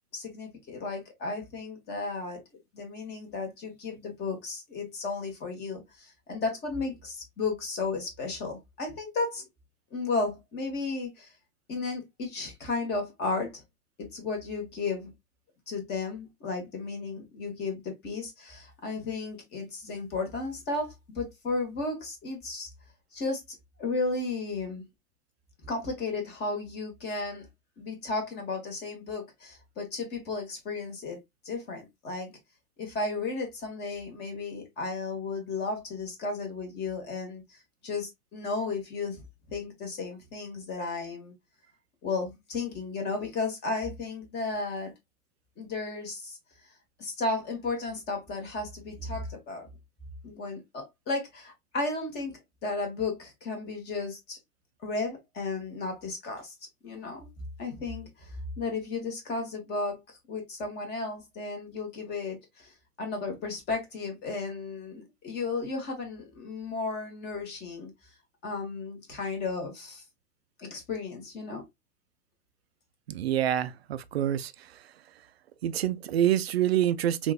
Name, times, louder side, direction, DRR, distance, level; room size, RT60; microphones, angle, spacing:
voice 1, 0.1-2.4 2.7-9.4 9.9-11.3 11.7-13.6 14.0-15.1 15.7-22.7 23.1-24.8 25.6-27.5 27.8-31.2 31.4-32.3 32.8-39.2 39.5-41.3 42.0-44.9 45.6-46.4 47.0-49.7 50.2-54.4 54.8-56.5 56.8-57.3 57.6-67.9 68.4-70.0 70.6-71.6, left 3 dB, 20° left, 1.5 m, -34 dB
voice 2, 73.1-74.8 75.6-77.3, right 11 dB, 45° right, 0.5 m, -27 dB
5.3 x 2.6 x 2.3 m
figure-of-eight pair, 110°, 45 cm